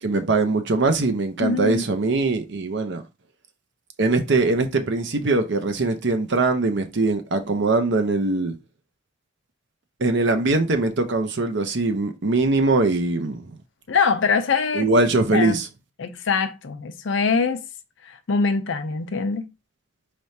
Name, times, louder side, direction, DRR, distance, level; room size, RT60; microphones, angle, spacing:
voice 1, 0.0-3.0 4.0-8.5 10.0-13.6 14.7-15.7, right 3 dB, 55° right, 0.7 m, -22 dB
voice 2, 1.4-1.8 13.9-14.9 15.3-15.6 16.0-17.6 18.0-19.5, left 5 dB, 60° left, 0.6 m, -23 dB
4.5 x 3.3 x 2.7 m
head